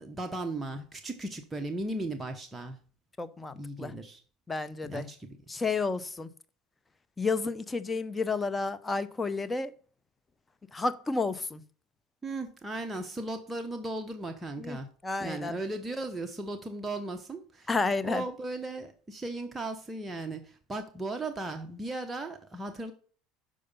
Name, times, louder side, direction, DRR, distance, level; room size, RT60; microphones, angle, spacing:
voice 1, 0.0-2.8 3.5-4.2 4.8-5.4 12.2-14.9 15.2-17.7 18.0-22.9, right 2 dB, 15° right, 0.9 m, -36 dB
voice 2, 3.2-3.9 4.5-5.1 5.5-6.3 7.2-9.7 10.7-11.6 14.6-14.8 15.0-15.6 17.7-18.2, left 3 dB, 20° left, 0.7 m, -31 dB
6.7 x 4.9 x 5.4 m
supercardioid pair, 90°, 0 cm